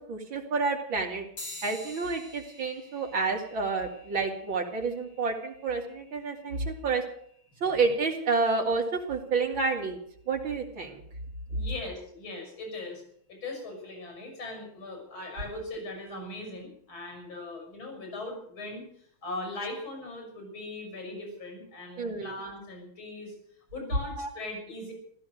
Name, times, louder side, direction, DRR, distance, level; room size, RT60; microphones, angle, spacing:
voice 1, 0.1-1.3 1.6-7.0 7.6-10.0 10.3-11.0 22.0-22.4 24.2-24.3, right 4 dB, 75° right, 1 dB, 3.5 m, -29 dB
sound 1, 1.4-11.2, left 2 dB, 65° left, 5.3 m, -51 dB
voice 2, 11.5-13.0 13.3-18.9 19.2-23.3 23.7-24.9, left 2 dB, 80° left, 2 dB, 6.9 m, -39 dB
15.0 x 14.0 x 6.6 m, 0.64 s
omnidirectional pair, 2.2 m